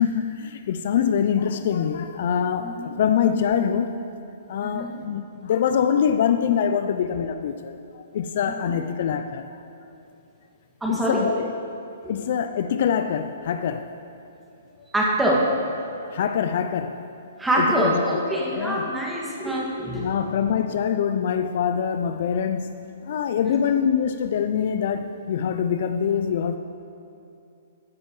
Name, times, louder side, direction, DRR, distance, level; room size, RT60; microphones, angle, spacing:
voice 1, 0.0-4.0 4.5-9.4 10.9-11.5 12.1-13.9 16.1-17.1 17.6-18.0 18.6-18.9 20.0-22.7 23.1-26.6, left 8 dB, 55° left, 9 dB, 0.4 m, -24 dB
voice 2, 2.6-2.9 4.7-4.9 8.5-8.8 10.8-11.3 12.0-12.1 14.9-15.5 17.4-20.2 23.4-23.6, right 1 dB, 5° right, -4 dB, 2.1 m, -25 dB
14.5 x 10.5 x 3.2 m, 2.7 s
figure-of-eight pair, 120°, 0 cm